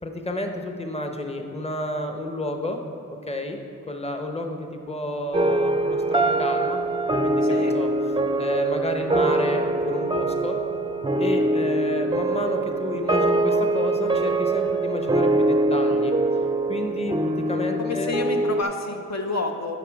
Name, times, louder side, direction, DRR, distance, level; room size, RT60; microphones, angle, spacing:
voice 1, 0.0-2.8 3.3-3.6 3.9-6.8 7.2-7.9 8.3-10.6 11.2-16.1 16.7-18.2, left 1 dB, 20° left, 4 dB, 0.9 m, -31 dB
sound 1, 5.3-18.6, right 2 dB, 15° right, 0.5 m, -23 dB
voice 2, 7.4-7.7 17.8-19.8, left 3 dB, 60° left, 3 dB, 0.7 m, -29 dB
10.0 x 5.8 x 4.7 m, 2.8 s
wide cardioid pair, 60°, 31 cm